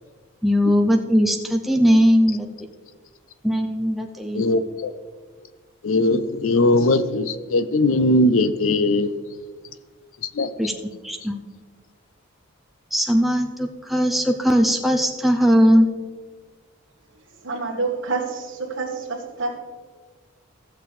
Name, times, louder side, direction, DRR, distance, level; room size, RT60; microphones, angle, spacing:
voice 1, 0.4-2.5 3.4-4.4 10.6-10.7 11.0-11.4 12.9-15.9, equal, ahead, 0.6 m, -19 dB
voice 2, 4.3-4.9 5.8-9.1 10.3-10.5, left 2 dB, 80° left, 0.6 m, -19 dB
voice 3, 17.4-19.6, right 3 dB, 65° right, 1.5 m, -27 dB
15.0 x 6.9 x 3.3 m
head